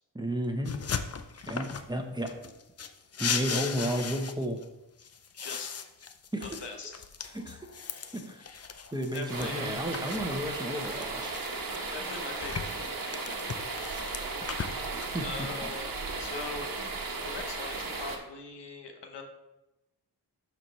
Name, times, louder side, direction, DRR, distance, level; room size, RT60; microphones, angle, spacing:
voice 1, 0.1-0.7 1.5-2.3 3.2-4.6 6.3-6.6 7.3-7.7 8.1-8.4 8.9-11.3 15.1-15.7, equal, 10° right, 4 dB, 1.0 m, -32 dB
sound 1, 0.7-1.9 2.3-4.6 5.0-9.5 9.9-11.8 12.1-15.1, left 6 dB, 40° left, 0.5 m, -37 dB
voice 2, 5.3-5.8 6.4-7.0 9.1-9.7 11.9-13.4 15.2-15.9 16.2-16.7 17.2-19.2, left 4 dB, 80° left, 4 dB, 1.2 m, -41 dB
sound 2, 9.3-18.2, right 3 dB, 55° right, 1.2 m, -36 dB
12.0 x 4.5 x 3.2 m, 0.94 s
cardioid pair, 70°, 41 cm